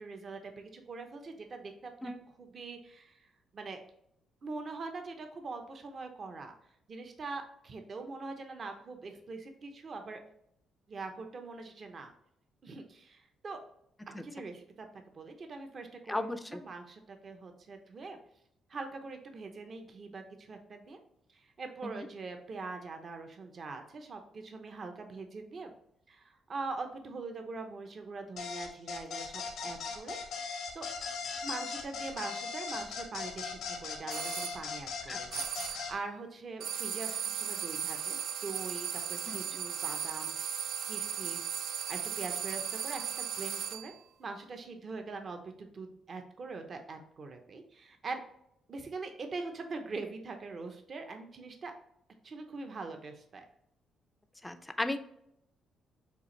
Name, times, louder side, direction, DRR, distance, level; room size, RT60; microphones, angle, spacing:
voice 1, 0.0-3.3 3.5-3.8 4.4-6.5 6.9-10.2 10.9-12.1 12.6-13.6 14.1-14.9 15.1-18.2 18.7-21.0 21.3-25.7 26.1-30.2 30.7-30.9 31.4-41.4 41.7-43.9 44.2-48.2 48.7-51.7 52.2-53.4, right 3 dB, 45° right, 5 dB, 0.7 m, -43 dB
voice 2, 16.1-16.6 21.8-22.1 35.1-35.2 39.3-39.4 54.4-55.0, left 1 dB, 10° left, 8 dB, 0.5 m, -35 dB
sound 1, 28.4-35.9, left 5 dB, 80° left, 1.1 m, -39 dB
sound 2, 34.1-34.6 35.3-35.9 36.6-44.0, right 8 dB, 80° right, 0.4 m, -36 dB
6.7 x 2.5 x 3.1 m, 0.76 s
cardioid pair, 90°, 0 cm